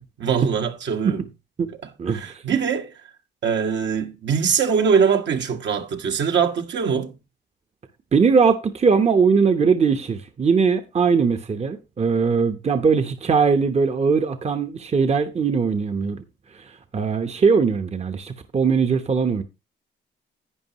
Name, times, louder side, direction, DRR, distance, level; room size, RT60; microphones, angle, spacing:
voice 1, 0.2-1.2 2.1-2.9 3.4-7.2, right 6 dB, 65° right, 1.6 m, -22 dB
voice 2, 2.0-2.4 8.1-16.2 16.5-19.4, right 5 dB, 35° right, 1.0 m, -20 dB
11.0 x 9.1 x 3.0 m
cardioid pair, 90°, 20 cm